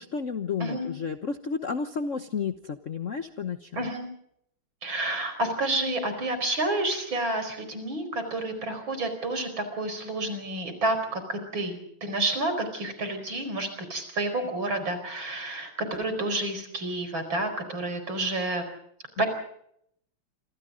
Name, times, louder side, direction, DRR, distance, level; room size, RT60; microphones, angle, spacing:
voice 1, 0.0-3.9 19.2-19.3, left 5 dB, 45° left, 8 dB, 1.2 m, -32 dB
voice 2, 3.8-4.1 4.8-18.6 19.2-19.3, right 2 dB, 65° right, 8 dB, 5.5 m, -29 dB
27.0 x 26.0 x 3.8 m, 0.71 s
omnidirectional pair, 2.3 m